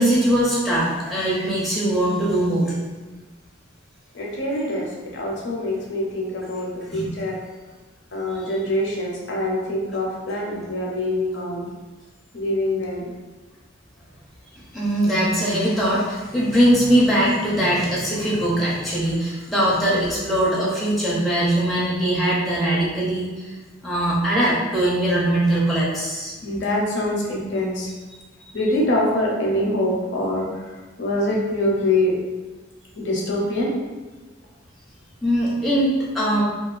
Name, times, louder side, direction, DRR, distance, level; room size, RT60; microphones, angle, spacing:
voice 1, 0.0-2.7 6.9-7.1 8.4-8.5 14.7-23.5 23.8-26.3 28.1-28.5 35.2-36.4, right 1 dB, ahead, -8 dB, 0.4 m, -21 dB
voice 2, 4.1-7.4 8.1-11.7 12.3-13.1 25.6-25.7 26.4-27.9 28.5-30.6 31.0-32.1 33.0-33.7, left 1 dB, 60° left, -2 dB, 0.5 m, -24 dB
2.3 x 2.3 x 2.3 m, 1.2 s
head